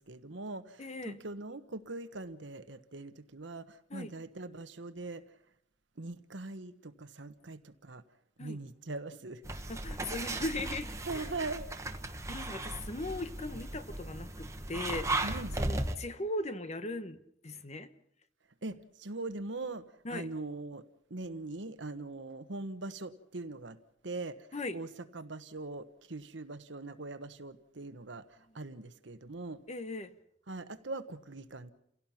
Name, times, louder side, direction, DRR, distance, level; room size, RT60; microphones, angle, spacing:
voice 1, 0.0-5.2 6.0-8.0 8.4-9.4 11.1-11.7 15.2-15.6 18.6-23.8 24.0-24.5 24.7-29.6 30.5-31.7, right 2 dB, 70° right, 1.2 m, -41 dB
voice 2, 0.8-1.2 3.9-4.1 8.4-8.6 9.7-11.3 12.3-15.3 15.6-17.9 20.0-20.3 24.5-24.8 29.7-30.1, left 2 dB, 35° left, 1.1 m, -39 dB
sound 1, 9.4-16.0, right 2 dB, 15° right, 1.3 m, -36 dB
29.5 x 17.0 x 5.8 m
head